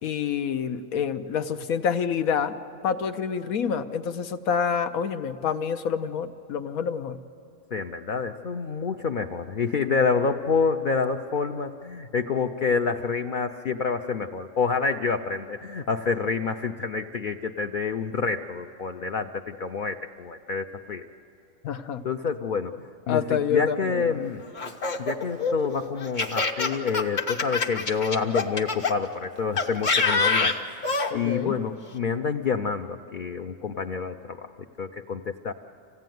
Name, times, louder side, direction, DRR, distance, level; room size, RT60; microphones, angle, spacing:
voice 1, 0.0-2.5 2.8-7.2 21.6-22.0 23.1-24.2 31.1-31.6, left 7 dB, 90° left, 9 dB, 1.3 m, -27 dB
voice 2, 7.7-21.0 22.0-22.7 23.1-24.5 25.0-30.5 31.1-34.4 34.8-35.5, left 5 dB, 50° left, 4 dB, 0.6 m, -28 dB
Laughter, 24.6-28.9 29.6-31.1, left 4 dB, 35° left, 1.0 m, -25 dB
25.5 x 16.5 x 9.3 m, 2.7 s
omnidirectional pair, 1.4 m